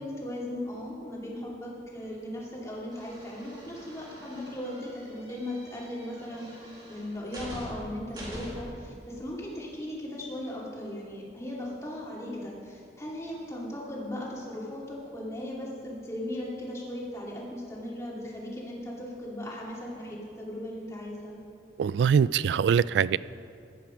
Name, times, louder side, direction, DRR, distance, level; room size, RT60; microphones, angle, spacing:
voice 1, 0.0-21.3, left 1 dB, 15° left, -4 dB, 2.4 m, -37 dB
sound 1, 2.9-8.8, equal, 25° right, 2.4 m, -45 dB
voice 2, 21.8-23.2, right 7 dB, 90° right, 19 dB, 0.3 m, -23 dB
14.5 x 10.5 x 5.1 m, 2.4 s
head